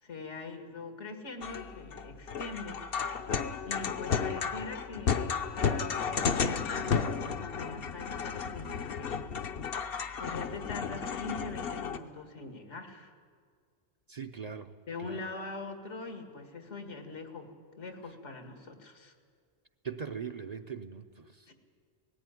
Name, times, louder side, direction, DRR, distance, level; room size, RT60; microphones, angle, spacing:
voice 1, 0.0-2.8 3.7-9.2 10.2-13.1 14.9-19.1 21.5-21.6, left 3 dB, 85° left, 6 dB, 2.3 m, -43 dB
sound 1, 1.4-12.0, left 6 dB, 55° left, 1.0 m, -33 dB
voice 2, 14.1-14.7 15.0-15.2 19.8-21.4, right 6 dB, 40° right, 7 dB, 0.7 m, -40 dB
17.5 x 15.5 x 9.7 m, 2.1 s
omnidirectional pair, 1.2 m